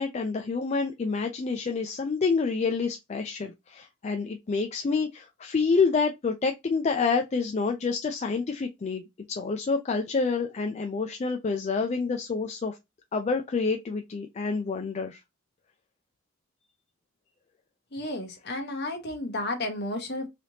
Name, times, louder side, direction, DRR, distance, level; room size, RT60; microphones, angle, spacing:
voice 1, 0.0-12.8 13.1-15.2, left 4 dB, 35° left, 0.3 m, -28 dB
voice 2, 17.9-20.3, left 2 dB, 55° left, 1.0 m, -32 dB
3.3 x 2.8 x 2.7 m
head